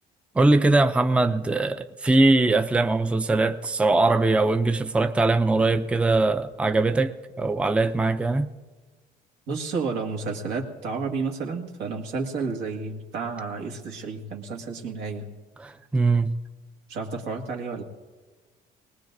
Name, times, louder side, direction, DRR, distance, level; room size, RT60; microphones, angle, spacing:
voice 1, 0.4-8.5 15.6-16.3, right 2 dB, 5° right, 0.4 m, -21 dB
voice 2, 9.5-15.3 16.9-17.8, right 4 dB, 85° right, 1.9 m, -31 dB
21.0 x 19.0 x 2.6 m
cardioid pair, 110°, 17 cm